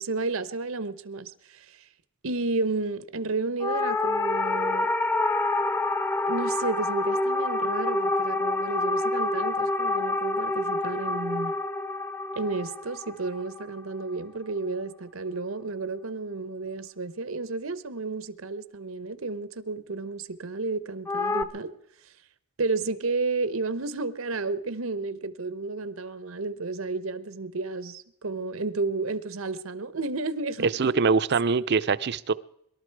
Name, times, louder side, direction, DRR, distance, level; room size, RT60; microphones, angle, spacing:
voice 1, 0.0-1.8 2.2-4.9 6.3-11.5 12.3-21.7 22.6-31.1, right 3 dB, 85° right, 1.0 m, -32 dB
sound 1, 3.6-14.1 21.1-21.4, left 2 dB, 10° left, 0.7 m, -27 dB
voice 2, 30.8-32.3, right 4 dB, 55° right, 0.6 m, -23 dB
23.0 x 12.5 x 4.7 m
head